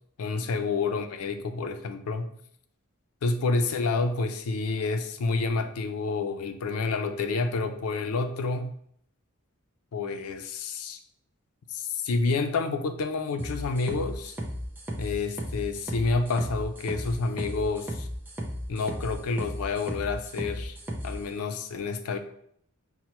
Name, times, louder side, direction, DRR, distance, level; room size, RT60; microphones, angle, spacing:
voice 1, 0.2-2.3 3.2-8.7 9.9-11.0 11.7-14.4 15.0-18.1 18.7-20.8 21.0-22.2, left 3 dB, 90° left, 8 dB, 0.4 m, -29 dB
sound 1, 13.4-21.2, equal, 10° right, 0.5 m, -35 dB
5.6 x 2.1 x 2.9 m, 0.68 s
head